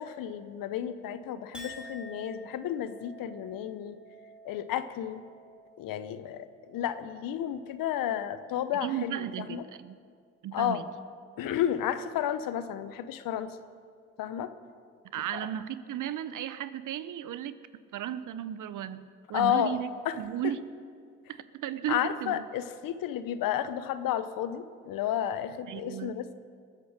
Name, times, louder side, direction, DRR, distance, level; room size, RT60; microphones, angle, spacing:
voice 1, 0.0-4.0 4.4-5.2 5.8-9.6 10.5-10.8 11.4-13.6 14.2-14.5 15.3-15.5 19.3-19.8 20.0-20.2 21.9-26.3, left 10 dB, 70° left, 12 dB, 0.9 m, -32 dB
Chink clink, 1.5-8.1 8.5-9.1, equal, 5° right, 2.8 m, -51 dB
voice 2, 8.8-10.0 10.4-10.8 15.1-17.5 17.9-19.9 20.2-20.6 21.3-22.5 25.7-26.3, right 11 dB, 60° right, 14 dB, 0.8 m, -35 dB
21.0 x 8.3 x 6.6 m, 2.1 s
hypercardioid pair, 55°, 35 cm